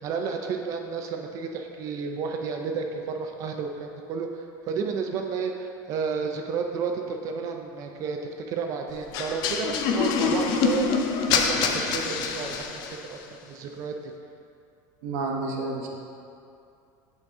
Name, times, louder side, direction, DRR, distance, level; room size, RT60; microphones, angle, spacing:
voice 1, 0.0-13.2 13.5-14.1, right 5 dB, 35° right, 4 dB, 0.4 m, -32 dB
sound 1, 9.1-13.1, left 5 dB, 45° left, 0.5 m, -25 dB
voice 2, 15.0-15.9, right 3 dB, 75° right, -1 dB, 1.0 m, -30 dB
8.0 x 4.1 x 3.5 m, 2.6 s
cardioid pair, 165°, 9 cm